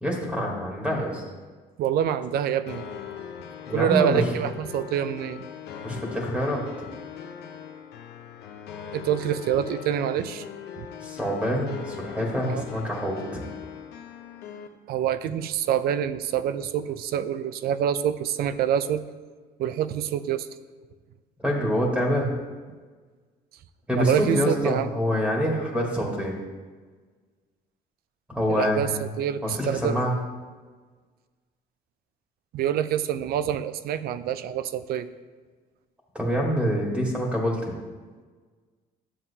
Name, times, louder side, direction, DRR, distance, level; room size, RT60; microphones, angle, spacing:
voice 1, 0.0-1.2 3.7-4.2 5.8-6.6 11.0-13.4 21.4-22.3 23.9-26.3 28.3-29.1 29.4-30.1 36.1-37.7, equal, 5° right, -2 dB, 1.6 m, -26 dB
voice 2, 1.8-2.8 3.7-5.5 8.9-10.5 10.7-10.9 12.4-12.7 14.9-19.0 19.6-20.5 23.9-24.9 28.5-30.0 32.5-35.1, right 9 dB, 65° right, 13 dB, 0.5 m, -26 dB
sound 1, 2.7-14.7, left 8 dB, 85° left, 0.8 m, -40 dB
11.0 x 7.2 x 2.8 m, 1.4 s
cardioid pair, 110°, 17 cm